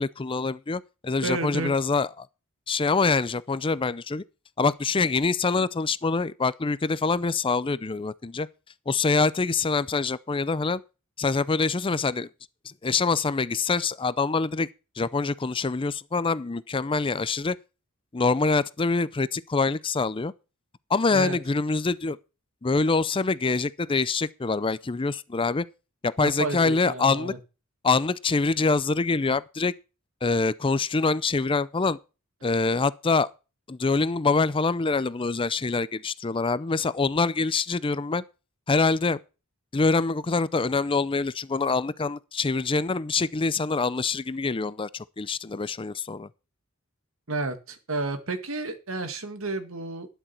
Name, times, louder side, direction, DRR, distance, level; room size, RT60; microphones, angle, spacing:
voice 1, 0.0-2.3 2.7-4.2 4.6-8.5 8.9-10.8 11.2-12.3 12.6-14.7 15.0-17.6 18.1-20.3 20.9-22.2 22.6-25.6 26.0-27.3 27.8-29.7 30.2-32.0 32.4-33.3 33.7-38.2 38.7-39.2 39.7-46.3, left 4 dB, 25° left, 0.5 m, -25 dB
voice 2, 1.2-1.7 21.1-21.4 26.2-27.4 47.3-50.1, right 3 dB, 70° right, 1.9 m, -31 dB
12.5 x 10.0 x 4.5 m
head